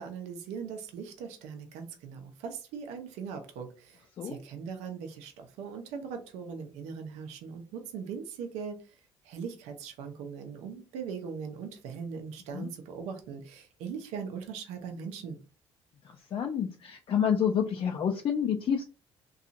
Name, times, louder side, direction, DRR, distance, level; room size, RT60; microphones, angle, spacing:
voice 1, 0.0-8.8 9.2-15.4, right 6 dB, 85° right, 5 dB, 0.6 m, -40 dB
voice 2, 16.0-18.8, left 8 dB, 50° left, 2 dB, 0.4 m, -29 dB
2.7 x 2.3 x 2.5 m, 0.33 s
supercardioid pair, 85°, 11 cm